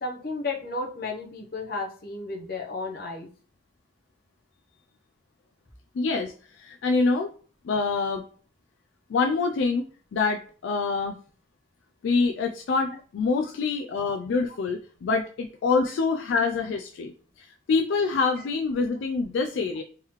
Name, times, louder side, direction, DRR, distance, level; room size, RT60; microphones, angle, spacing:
voice 1, 0.0-3.3 15.9-16.0 18.4-18.5, left 3 dB, 50° left, 1 dB, 0.8 m, -33 dB
voice 2, 5.9-7.3 7.6-8.2 9.1-9.8 10.1-11.2 12.0-19.8, left 4 dB, 65° left, 4 dB, 0.3 m, -26 dB
3.7 x 3.1 x 3.0 m, 0.43 s
head